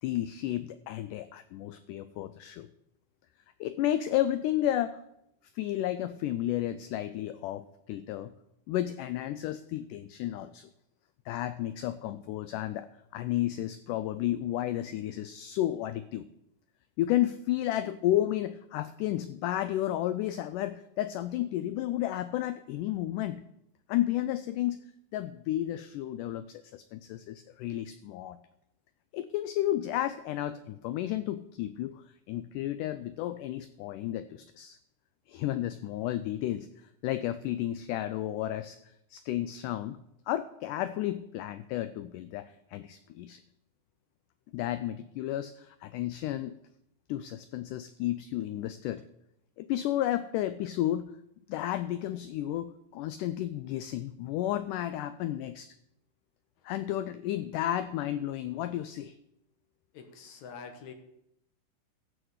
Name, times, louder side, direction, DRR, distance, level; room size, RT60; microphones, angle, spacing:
voice 1, 0.0-2.7 3.6-5.0 5.6-8.3 8.7-10.7 11.3-16.3 17.0-23.4 23.9-24.8 25.1-28.4 29.1-34.8 35.3-36.7 37.0-38.8 39.1-40.0 40.3-43.4 44.5-46.5 47.1-49.0 49.6-51.1 51.5-55.7 56.6-59.2, left 13 dB, 90° left, 12 dB, 1.8 m, -32 dB
voice 2, 59.9-60.9, left 6 dB, 65° left, 6 dB, 2.2 m, -46 dB
13.5 x 5.0 x 8.0 m, 0.80 s
omnidirectional pair, 4.2 m